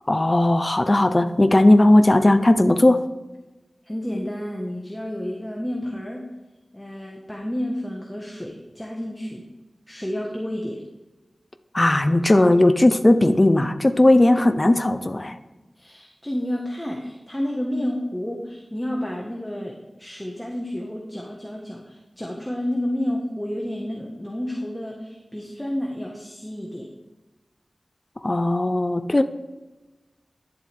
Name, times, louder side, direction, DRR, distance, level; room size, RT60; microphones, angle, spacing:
voice 1, 0.1-3.1 11.7-15.4 28.2-29.2, left 1 dB, 30° left, 9 dB, 0.6 m, -17 dB
voice 2, 3.8-6.3 6.7-9.4 9.9-10.8 15.7-26.9, left 1 dB, 10° left, -1 dB, 1.5 m, -30 dB
11.5 x 7.8 x 3.5 m, 1.1 s
wide cardioid pair, 75°, 0 cm